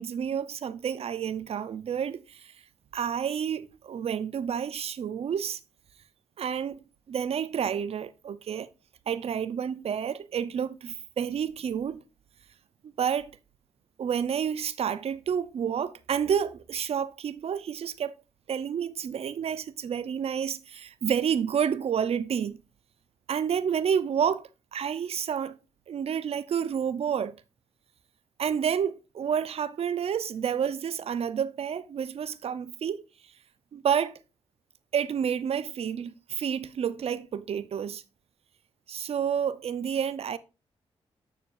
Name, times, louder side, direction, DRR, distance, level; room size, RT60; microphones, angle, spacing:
voice 1, 0.0-2.5 2.9-5.6 6.4-6.8 7.1-8.7 9.1-12.0 13.0-13.3 14.0-18.1 18.5-22.6 23.3-25.6 25.9-27.4 28.4-33.0 33.7-34.2 34.9-38.0 38.9-40.4, right 8 dB, 65° right, 0.7 m, -29 dB
9.9 x 6.4 x 2.6 m
cardioid pair, 65°, 11 cm